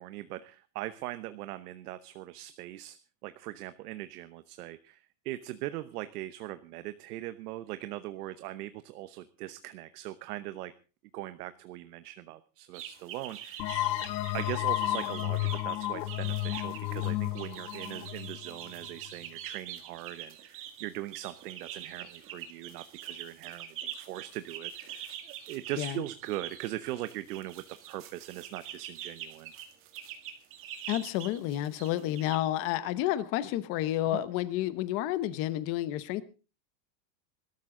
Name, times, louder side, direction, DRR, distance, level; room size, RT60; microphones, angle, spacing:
voice 1, 0.0-3.0 3.2-10.7 11.1-13.7 14.3-29.5, right 15 dB, 65° right, 12 dB, 1.1 m, -40 dB
sound 1, 12.7-32.4, right 10 dB, 25° right, 1.9 m, -44 dB
sound 2, 13.6-19.1, left 16 dB, 90° left, 1.4 m, -32 dB
voice 2, 30.9-36.2, left 13 dB, 25° left, 15 dB, 0.8 m, -30 dB
20.5 x 13.0 x 3.7 m, 0.34 s
supercardioid pair, 175°, 50 cm